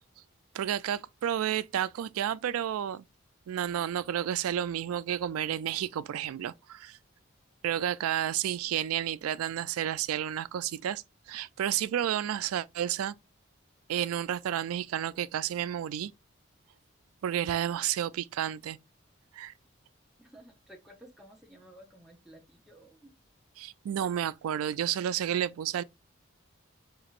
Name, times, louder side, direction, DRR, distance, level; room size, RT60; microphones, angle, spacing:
voice 1, 0.5-3.0 3.5-7.0 7.6-13.1 13.9-16.1 17.2-18.8 19.3-19.5 23.6-25.8, right 10 dB, 90° right, 0.3 m, -31 dB
voice 2, 20.2-23.1, right 1 dB, ahead, 0.7 m, -54 dB
5.1 x 2.9 x 2.4 m
head